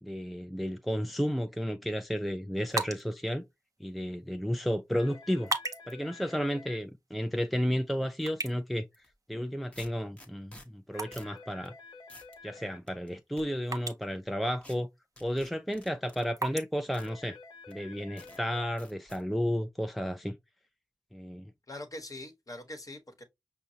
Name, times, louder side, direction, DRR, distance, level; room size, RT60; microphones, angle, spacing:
voice 1, 0.0-3.4 3.8-5.5 5.9-8.9 9.3-11.7 12.4-14.9 15.2-17.4 17.7-20.4 21.1-21.5, equal, ahead, 0.4 m, -32 dB
sound 1, 2.5-18.0, right 3 dB, 45° right, 0.6 m, -43 dB
sound 2, 4.9-6.8 10.9-12.8 16.9-18.8, left 4 dB, 65° left, 0.8 m, -50 dB
sound 3, 8.9-9.1 9.7-10.7 11.1-11.3 11.6-11.7 12.1-12.4 12.9-13.4 14.6-14.8 15.2-16.3 16.9-17.1 17.7-17.8 18.2-18.4 18.8-19.2, left 1 dB, 15° left, 0.9 m, -52 dB
voice 2, 21.7-23.2, left 1 dB, 45° left, 1.1 m, -43 dB
5.2 x 2.2 x 2.7 m
cardioid pair, 40°, 8 cm